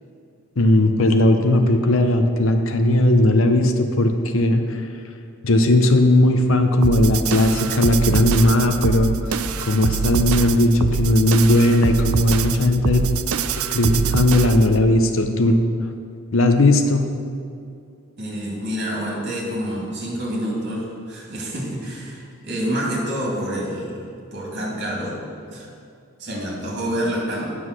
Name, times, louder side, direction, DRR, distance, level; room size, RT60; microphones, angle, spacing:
voice 1, 0.6-4.8 5.4-13.1 13.7-15.6 16.3-17.1, left 1 dB, 60° left, 6 dB, 0.7 m, -17 dB
sound 1, 6.8-14.7, right 7 dB, 75° right, 0.4 m, -24 dB
voice 2, 18.2-24.0 24.3-25.2 25.5-25.7 26.2-27.6, equal, 50° right, -4 dB, 2.6 m, -27 dB
9.4 x 6.2 x 6.1 m, 2.4 s
head